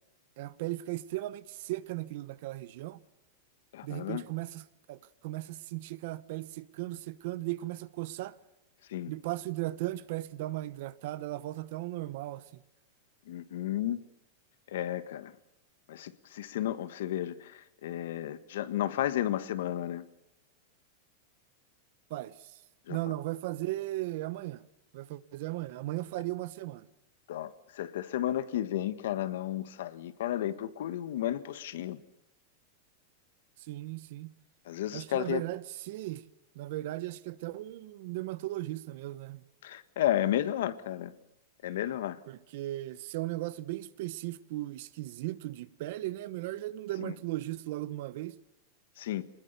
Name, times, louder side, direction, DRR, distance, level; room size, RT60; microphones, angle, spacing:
voice 1, 0.4-3.0 3.8-8.4 9.1-12.6 22.1-22.5 22.9-24.6 24.9-26.9 33.6-34.3 34.9-36.2 36.5-39.4 42.3-48.3, right 17 dB, 55° right, 1.0 m, -37 dB
voice 2, 3.7-4.2 8.9-9.1 13.3-14.0 14.7-15.3 15.9-20.0 22.9-23.0 27.3-32.0 34.7-35.4 39.6-41.1 41.6-42.2 47.0-47.1 49.0-49.2, left 12 dB, 75° left, 1.5 m, -33 dB
24.0 x 20.5 x 6.9 m
supercardioid pair, 160°, 0 cm